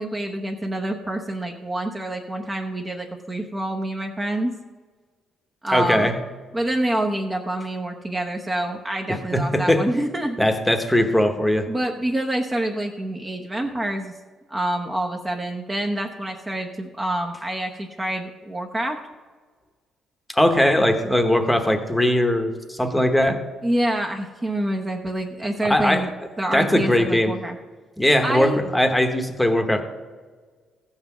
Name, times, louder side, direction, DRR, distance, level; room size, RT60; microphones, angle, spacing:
voice 1, 0.0-4.6 5.6-6.1 6.5-10.4 11.7-14.1 14.5-19.0 23.6-26.1 26.4-27.6 28.2-28.6, right 1 dB, 15° right, 2 dB, 0.8 m, -27 dB
voice 2, 5.7-6.1 9.1-9.8 10.4-11.7 20.3-23.4 25.6-26.1 26.5-27.3 28.0-29.8, left 1 dB, 5° left, 6 dB, 1.0 m, -20 dB
15.0 x 5.7 x 7.1 m, 1.5 s
cardioid pair, 135°, 0 cm